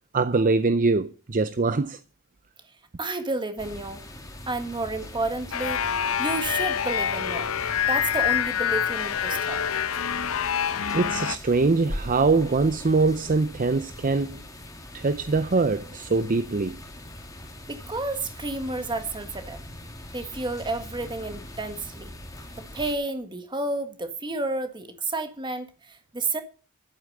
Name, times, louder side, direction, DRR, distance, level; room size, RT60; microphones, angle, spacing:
voice 1, 0.1-2.0 10.9-14.4 14.9-16.8, right 3 dB, 40° right, 0.6 m, -23 dB
voice 2, 3.0-4.0 4.5-5.8 6.2-7.5 7.9-9.6 17.7-19.6 20.1-22.1 22.7-26.4, right 2 dB, 20° right, 1.6 m, -31 dB
sound 1, 3.6-23.0, left 1 dB, 15° left, 2.3 m, -41 dB
sound 2, 5.5-11.4, left 9 dB, 70° left, 0.8 m, -26 dB
11.5 x 8.7 x 6.5 m
head